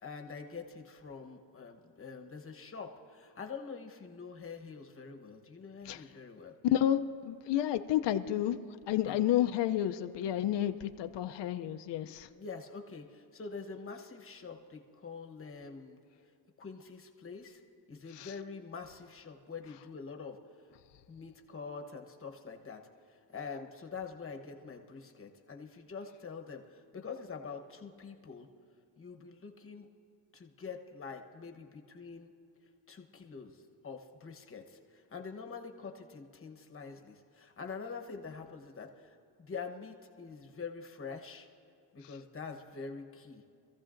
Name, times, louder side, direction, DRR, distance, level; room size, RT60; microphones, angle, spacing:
voice 1, 0.0-6.5 9.0-9.2 12.3-16.0 16.6-17.6 17.9-20.4 21.1-22.8 23.1-28.5 29.0-29.9 30.3-32.3 32.9-41.5 41.9-43.4, left 5 dB, 30° left, 3 dB, 1.1 m, -45 dB
voice 2, 6.6-8.6 8.9-12.3 18.2-18.3, left 11 dB, 65° left, 8 dB, 0.6 m, -30 dB
25.0 x 14.5 x 2.6 m, 2.4 s
cardioid pair, 120°, 45 cm